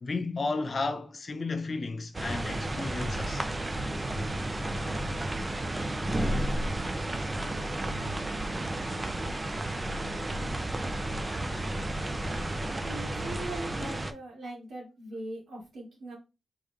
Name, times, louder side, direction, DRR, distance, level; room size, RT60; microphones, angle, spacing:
voice 1, 0.0-3.5, left 3 dB, 40° left, 0.5 m, -33 dB
sound 1, 2.1-14.1, right 1 dB, 20° right, 0.4 m, -32 dB
voice 2, 12.8-16.2, right 2 dB, 85° right, 2.7 m, -40 dB
4.9 x 3.8 x 2.5 m
wide cardioid pair, 145°, 0 cm